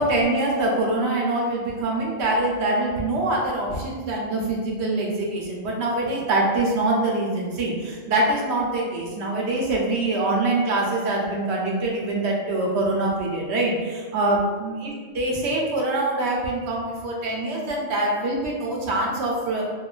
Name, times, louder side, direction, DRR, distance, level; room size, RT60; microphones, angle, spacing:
voice 1, 0.0-19.6, right 2 dB, 65° right, -2 dB, 0.8 m, -24 dB
2.9 x 2.2 x 2.3 m, 1.5 s
omnidirectional pair, 1.4 m